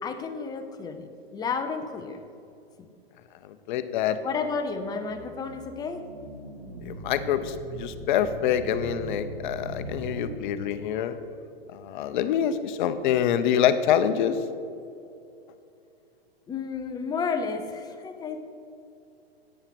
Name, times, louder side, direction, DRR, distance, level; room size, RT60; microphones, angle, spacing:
voice 1, 0.0-2.2 4.2-6.0 16.5-18.4, left 5 dB, 10° left, 6 dB, 0.6 m, -32 dB
voice 2, 3.7-4.2 6.9-11.2 11.7-14.3, left 9 dB, 50° left, 11 dB, 0.7 m, -25 dB
sound 1, 4.7-11.0, right 1 dB, 85° right, 2.6 m, -41 dB
9.2 x 7.3 x 5.2 m, 2.6 s
hypercardioid pair, 125°, 31 cm